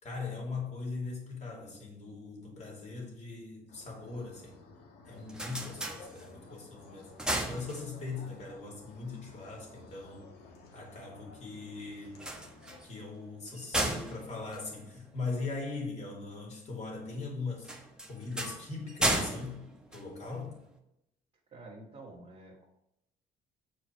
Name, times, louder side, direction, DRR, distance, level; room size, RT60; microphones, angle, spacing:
voice 1, 0.0-4.6 5.1-7.1 7.4-10.2 10.7-12.2 12.8-17.7 18.1-19.6 19.9-20.6, left 3 dB, 40° left, -1 dB, 2.7 m, -40 dB
sound 1, 3.7-12.8, left 3 dB, 70° left, 1.6 m, -55 dB
sound 2, 5.0-6.6 7.0-8.3 12.1-15.5 17.6-20.7, right 1 dB, 5° right, 1.1 m, -35 dB
voice 2, 21.5-22.6, right 2 dB, 40° right, -5 dB, 1.8 m, -49 dB
7.0 x 4.8 x 4.5 m, 0.81 s
cardioid pair, 110°, 17 cm